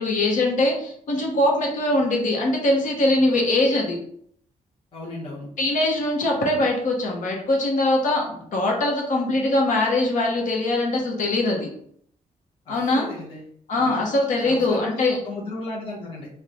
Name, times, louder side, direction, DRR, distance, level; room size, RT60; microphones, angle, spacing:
voice 1, 0.0-4.0 5.6-11.7 12.7-13.0 13.7-15.2, left 2 dB, 65° left, 0 dB, 0.9 m, -22 dB
voice 2, 4.9-5.5 12.6-13.5 13.8-14.0 14.4-16.3, left 2 dB, 40° left, -4 dB, 0.8 m, -35 dB
3.0 x 2.2 x 3.8 m, 0.65 s
wide cardioid pair, 180°, 14 cm